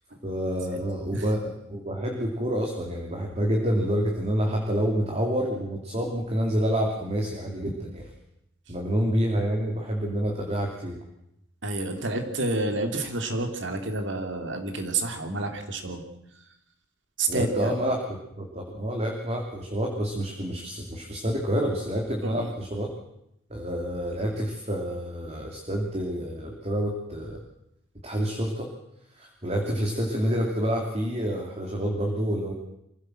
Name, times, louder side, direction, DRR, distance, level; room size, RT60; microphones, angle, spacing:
voice 1, 0.2-8.1 8.7-11.0 17.3-22.9 23.5-27.4 28.0-28.7 29.1-32.5, equal, 30° right, 1 dB, 2.8 m, -28 dB
voice 2, 11.6-16.0 17.2-17.7 22.2-22.5, right 2 dB, 60° right, 6 dB, 2.9 m, -29 dB
24.5 x 16.0 x 7.7 m, 0.80 s
head